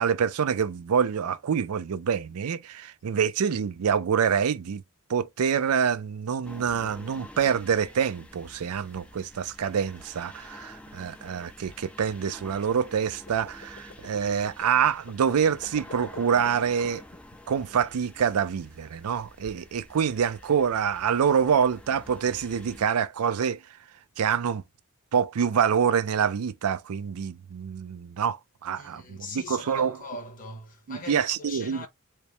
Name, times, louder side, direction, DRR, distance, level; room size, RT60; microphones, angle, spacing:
voice 1, 0.0-4.8 5.1-17.0 17.5-23.6 24.2-24.6 25.1-30.0 30.9-31.9, right 7 dB, 90° right, 0.4 m, -26 dB
sound 1, 6.4-22.9, left 1 dB, 5° left, 0.3 m, -49 dB
sound 2, 13.2-18.5, left 3 dB, 70° left, 2.2 m, -46 dB
voice 2, 28.7-31.9, left 2 dB, 40° left, 1.1 m, -41 dB
4.4 x 2.1 x 3.2 m
head